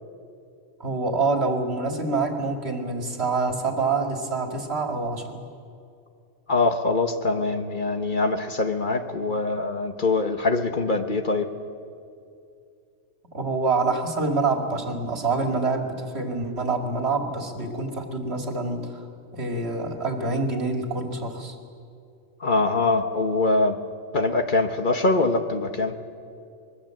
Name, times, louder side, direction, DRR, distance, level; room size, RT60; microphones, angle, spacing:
voice 1, 0.8-5.4 13.3-19.0 19.3-21.6, right 3 dB, 60° right, 4 dB, 2.4 m, -26 dB
voice 2, 6.5-11.5 22.4-23.8 24.1-25.9, left 3 dB, 45° left, 6 dB, 1.2 m, -23 dB
24.5 x 21.5 x 7.7 m, 2.5 s
omnidirectional pair, 1.2 m